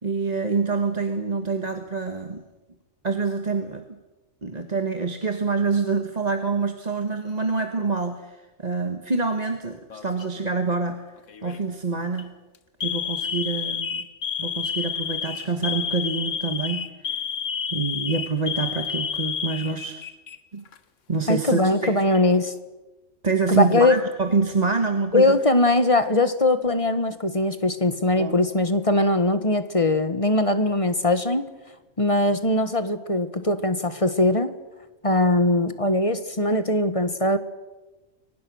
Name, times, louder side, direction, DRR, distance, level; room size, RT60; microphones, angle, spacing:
voice 1, 0.0-2.4 3.0-4.0 4.4-11.0 11.4-12.3 12.8-14.1 14.4-17.2 17.7-20.0 20.5-20.6 21.1-22.0 23.2-25.4 28.1-28.4, right 4 dB, 30° right, 6 dB, 1.5 m, -26 dB
Alarm, 9.9-10.4 11.3-11.6 12.0-12.2 12.8-20.4 20.7-20.8 21.7-22.4, left 7 dB, 65° left, 1.5 m, -30 dB
voice 2, 21.3-22.5 23.5-24.0 25.1-31.4 32.0-34.5 35.0-37.4, left 2 dB, 25° left, 10 dB, 1.4 m, -21 dB
29.5 x 23.5 x 6.3 m, 1.1 s
omnidirectional pair, 1.5 m